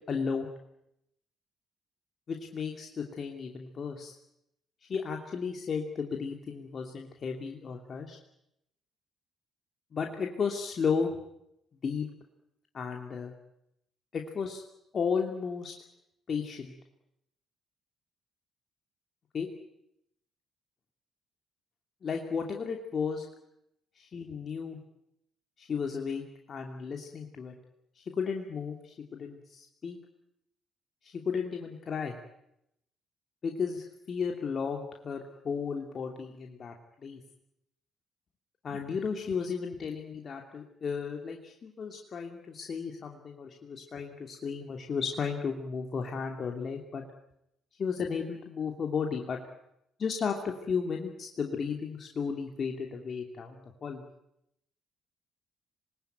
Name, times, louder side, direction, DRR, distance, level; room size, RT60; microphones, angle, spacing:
voice 1, 0.1-0.5 2.3-4.1 4.9-8.2 9.9-11.2 11.8-12.1 12.7-13.3 14.1-14.6 14.9-15.7 16.3-16.7 19.3-19.5 22.0-23.3 23.9-24.8 25.6-27.5 28.0-30.0 31.0-32.2 33.4-36.7 37.0-37.2 38.6-47.0 47.8-49.4 50.0-54.0, left 6 dB, 50° left, 2 dB, 2.9 m, -34 dB
26.0 x 20.5 x 9.3 m, 0.82 s
hypercardioid pair, 50°, 0 cm